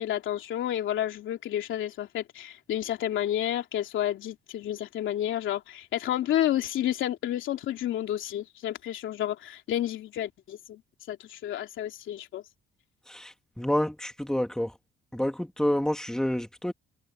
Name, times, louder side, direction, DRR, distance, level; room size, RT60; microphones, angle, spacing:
voice 1, 0.0-10.8 11.1-12.4, left 12 dB, 80° left, 3.0 m, -30 dB
voice 2, 13.1-14.8 15.1-16.7, left 1 dB, 5° left, 2.5 m, -28 dB
cardioid pair, 90°, 20 cm